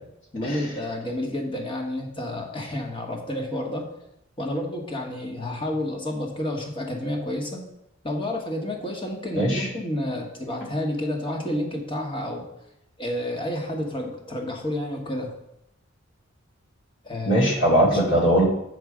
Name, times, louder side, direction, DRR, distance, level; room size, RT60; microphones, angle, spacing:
voice 1, 0.3-3.9 4.4-7.6 8.0-12.4 13.0-15.3 17.0-17.4 17.8-18.0, left 1 dB, 25° left, 1 dB, 1.3 m, -30 dB
voice 2, 9.3-9.7 17.3-18.4, right 1 dB, 60° left, -3 dB, 2.5 m, -20 dB
7.9 x 4.7 x 6.2 m, 0.81 s
head